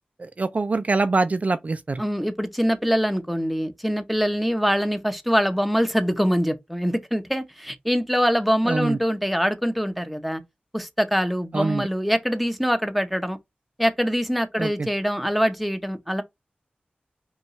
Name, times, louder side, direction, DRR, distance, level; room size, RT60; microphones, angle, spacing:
voice 1, 0.2-2.0 8.7-9.0 11.5-11.8 14.6-14.9, right 3 dB, 45° right, 0.3 m, -24 dB
voice 2, 2.0-10.4 10.7-13.4 13.8-16.2, equal, ahead, 0.7 m, -24 dB
5.2 x 2.3 x 3.0 m
wide cardioid pair, 65°, 3 cm